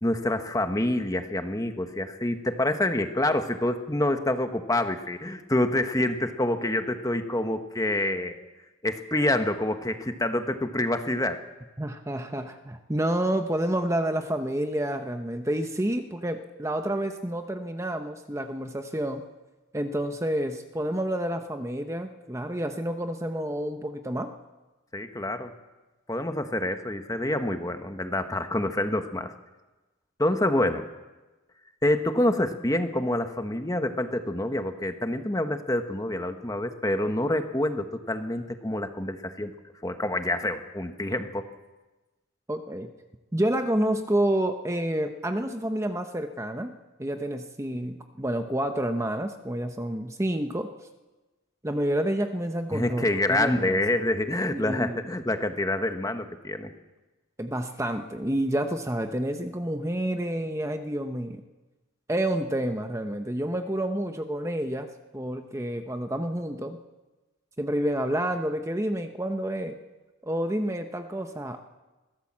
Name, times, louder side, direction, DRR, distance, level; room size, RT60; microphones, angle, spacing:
voice 1, 0.0-8.5 8.8-11.4 24.9-25.5 26.1-29.3 30.2-30.9 31.8-39.5 39.8-41.5 52.7-56.7, left 1 dB, 15° left, 7 dB, 1.2 m, -27 dB
voice 2, 11.8-19.2 19.7-24.3 42.5-42.9 43.3-50.7 51.6-53.8 54.5-55.0 57.4-61.4 62.1-64.9 65.1-66.8 67.6-69.8 70.2-71.6, right 1 dB, 15° right, 6 dB, 0.9 m, -29 dB
22.0 x 16.0 x 7.5 m, 1.1 s
head